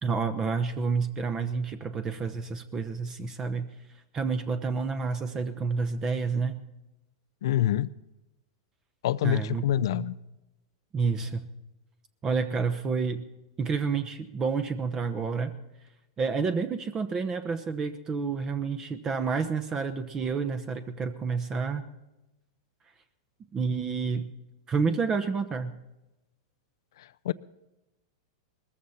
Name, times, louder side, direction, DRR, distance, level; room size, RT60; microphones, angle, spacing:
voice 1, 0.0-3.7 4.1-6.6 9.2-9.6 9.9-10.1 10.9-11.4 12.2-13.2 13.6-15.5 16.2-21.9 23.5-24.3 24.7-25.7, right 5 dB, 25° right, 10 dB, 1.0 m, -29 dB
voice 2, 7.4-7.9 9.0-10.2 27.0-27.3, left 12 dB, 70° left, 15 dB, 0.5 m, -26 dB
20.0 x 14.5 x 4.3 m, 0.97 s
hypercardioid pair, 115°, 2 cm